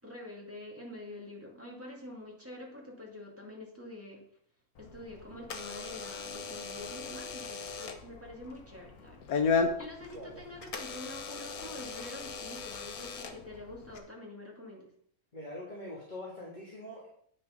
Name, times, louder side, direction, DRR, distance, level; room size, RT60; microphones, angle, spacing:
voice 1, 0.0-4.2 4.8-9.2 9.6-14.9, left 1 dB, 10° right, -2 dB, 2.4 m, -46 dB
Door / Alarm, 4.7-14.0, left 5 dB, 80° left, 1.4 m, -36 dB
voice 2, 15.3-17.1, left 1 dB, 30° left, -4 dB, 1.9 m, -43 dB
9.4 x 6.3 x 5.2 m, 0.63 s
omnidirectional pair, 1.5 m